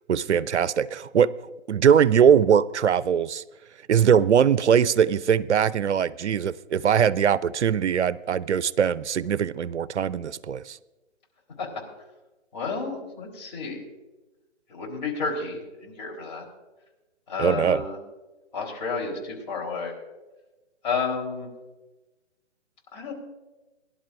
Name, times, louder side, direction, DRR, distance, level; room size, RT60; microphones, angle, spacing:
voice 1, 0.1-1.3 1.7-3.4 3.9-10.8 17.4-17.8, right 8 dB, 75° right, 20 dB, 0.5 m, -21 dB
voice 2, 12.5-13.8 14.7-16.5 17.3-18.0 18.5-19.9 20.8-21.5 22.9-23.1, left 4 dB, 40° left, 0 dB, 3.8 m, -31 dB
22.5 x 11.5 x 2.5 m, 1.1 s
figure-of-eight pair, 145°, 35 cm